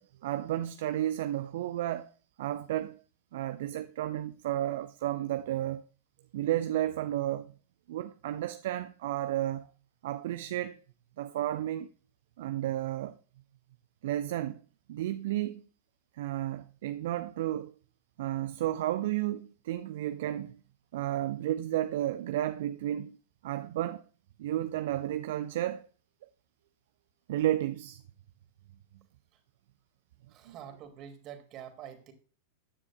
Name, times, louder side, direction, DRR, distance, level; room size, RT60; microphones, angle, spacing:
voice 1, 0.0-2.1 2.4-3.0 3.3-5.8 6.3-7.5 7.9-9.7 10.0-10.8 11.2-11.9 12.4-13.2 14.0-14.6 14.9-15.6 16.1-17.7 18.2-20.6 20.9-23.2 23.4-24.0 24.4-25.8 27.3-28.0 30.5-30.6, right 13 dB, 55° right, 0.5 m, -32 dB
voice 2, 30.3-32.1, right 9 dB, 35° right, 2.2 m, -46 dB
14.5 x 9.6 x 2.2 m
figure-of-eight pair, 90°, 0 cm